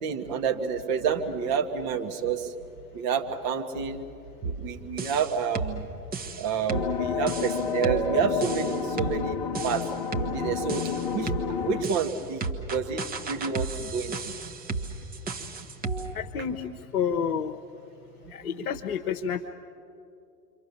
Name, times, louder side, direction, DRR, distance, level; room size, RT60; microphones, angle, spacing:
voice 1, 0.0-2.5 2.9-4.1 4.4-5.9 6.4-9.9 10.2-11.3 11.6-14.5 18.5-18.6, right 6 dB, 40° right, 4 dB, 1.9 m, -29 dB
sound 1, 4.4-4.6 5.0-5.8 6.1-9.2 9.5-10.3 10.7-11.5 11.8-16.1, right 2 dB, 20° right, 1.4 m, -33 dB
sound 2, 6.7-11.8, left 7 dB, 35° left, 1.2 m, -31 dB
voice 2, 16.1-17.6 18.3-19.5, left 7 dB, 60° left, 2 dB, 1.1 m, -30 dB
28.5 x 25.0 x 7.1 m, 2.6 s
figure-of-eight pair, 95°, 48 cm